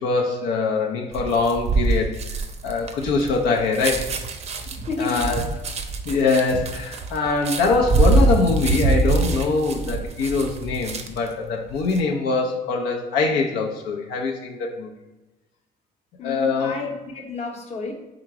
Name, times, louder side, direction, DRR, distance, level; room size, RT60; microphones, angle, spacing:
voice 1, 0.0-2.2 2.6-4.1 5.0-5.4 6.0-14.9 16.2-16.8, left 4 dB, 85° left, 0 dB, 0.6 m, -23 dB
sound 1, 1.1-11.3 11.7-12.0, right 3 dB, 40° right, 0.5 m, -24 dB
voice 2, 4.9-5.4 16.2-17.9, left 3 dB, 40° left, 1 dB, 0.8 m, -31 dB
3.7 x 2.9 x 4.6 m, 1.1 s
cardioid pair, 110°, 17 cm